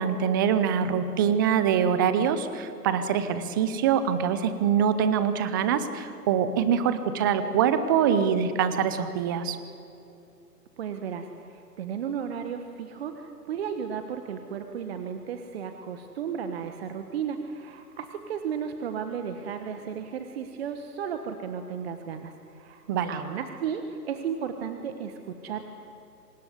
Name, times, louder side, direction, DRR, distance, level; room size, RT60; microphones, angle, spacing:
voice 1, 0.0-9.6 22.9-23.1, right 8 dB, 15° right, 11 dB, 0.6 m, -24 dB
voice 2, 10.8-25.6, right 7 dB, 40° right, 6 dB, 1.5 m, -34 dB
25.5 x 20.0 x 9.7 m, 2.7 s
figure-of-eight pair, 135°, 49 cm